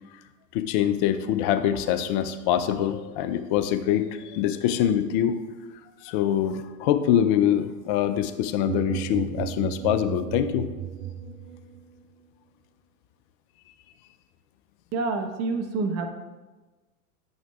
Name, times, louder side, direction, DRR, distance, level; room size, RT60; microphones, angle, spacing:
voice 1, 0.5-5.4 6.0-10.7, left 10 dB, 35° left, 10 dB, 0.4 m, -24 dB
sound 1, 8.6-11.8, right 9 dB, 65° right, 0.8 m, -34 dB
voice 2, 14.9-16.1, right 3 dB, 35° right, 6 dB, 0.8 m, -27 dB
8.9 x 6.3 x 2.3 m, 1.2 s
hypercardioid pair, 105°, 46 cm